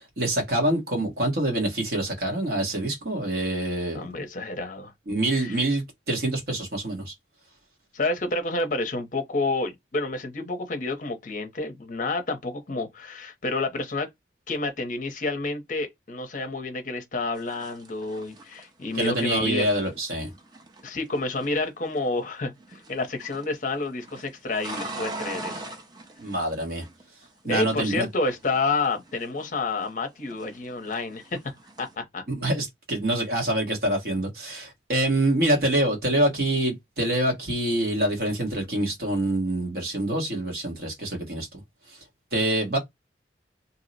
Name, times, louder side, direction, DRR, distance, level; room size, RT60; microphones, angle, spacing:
voice 1, 0.0-4.0 5.1-7.1 18.9-20.3 26.2-26.8 27.4-28.1 32.3-41.5 41.9-42.0 42.3-42.8, right 1 dB, 60° right, 1.1 m, -26 dB
voice 2, 3.9-4.9 5.4-5.6 7.9-14.1 14.5-19.7 20.8-25.7 27.5-32.2, left 3 dB, 45° left, 0.6 m, -29 dB
sound 1, 17.4-22.3 22.6-23.5 23.8-27.3 27.6-30.0 30.3-32.0, right 2 dB, 25° right, 0.5 m, -42 dB
2.7 x 2.0 x 3.9 m
head